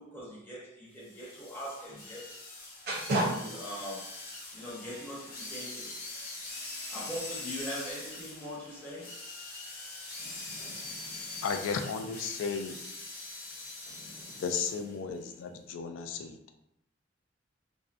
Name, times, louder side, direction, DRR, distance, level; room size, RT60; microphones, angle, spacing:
voice 1, 0.0-2.4 3.2-4.2 4.5-6.0 6.9-9.2, equal, 10° left, 0.6 m, -41 dB
sound 1, 1.0-15.0, left 2 dB, 50° left, 0.7 m, -43 dB
voice 2, 2.9-3.3 10.2-11.3 14.0-14.4, right 1 dB, 55° right, 0.6 m, -34 dB
voice 3, 11.4-12.8 14.4-16.4, left 5 dB, 80° left, 0.3 m, -34 dB
2.5 x 2.0 x 2.4 m
head